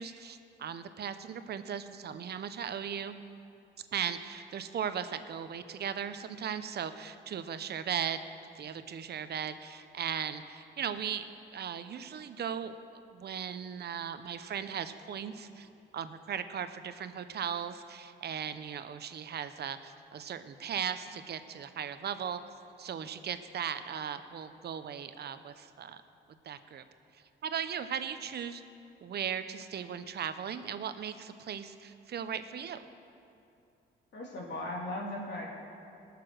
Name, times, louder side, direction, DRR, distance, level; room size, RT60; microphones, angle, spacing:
voice 1, 0.0-3.2 3.9-8.2 8.6-11.2 11.5-12.8 13.1-15.7 15.9-22.4 22.8-26.0 26.4-26.8 27.4-28.6 29.0-32.8, right 8 dB, 55° right, 11 dB, 0.8 m, -37 dB
voice 2, 34.1-35.5, left 1 dB, 60° left, -4 dB, 3.1 m, -37 dB
20.5 x 6.9 x 6.2 m, 2.6 s
cardioid pair, 90°, 20 cm